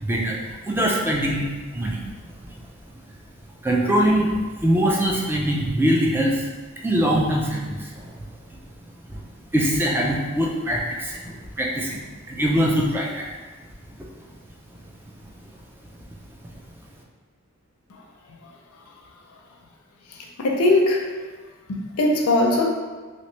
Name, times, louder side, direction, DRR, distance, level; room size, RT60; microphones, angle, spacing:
voice 1, 0.0-2.0 2.4-2.5 3.6-4.3 4.6-6.5 6.8-8.1 9.1-9.2 9.5-12.0 12.3-13.2, equal, 10° right, -2 dB, 0.4 m, -22 dB
voice 2, 17.9-18.6 18.9-19.0 19.3-19.4 20.1-21.1 21.7-22.6, left 2 dB, 80° left, 0 dB, 0.5 m, -22 dB
2.9 x 2.9 x 3.1 m, 1.4 s
head